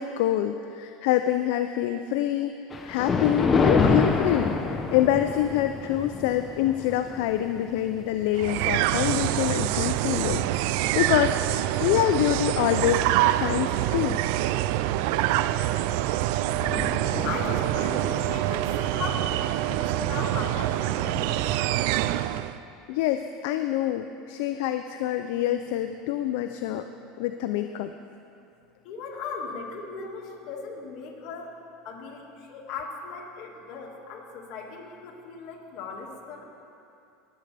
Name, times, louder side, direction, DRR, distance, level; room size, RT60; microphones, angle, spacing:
voice 1, 0.0-2.6 2.8-14.2 22.9-26.9 27.2-27.9, left 12 dB, 75° left, 8 dB, 0.4 m, -26 dB
Thunder, 2.7-11.2 11.8-12.0 12.7-12.8 13.2-13.3 15.4-15.6 16.0-16.1 16.2-22.2, left 4 dB, 25° left, 0.8 m, -30 dB
sound 1, 8.3-22.6, right 14 dB, 70° right, 0.3 m, -26 dB
voice 2, 17.2-21.2 28.8-31.6 31.8-36.4, left 4 dB, 60° left, -1 dB, 2.0 m, -37 dB
20.0 x 7.9 x 3.4 m, 2.7 s
supercardioid pair, 115°, 0 cm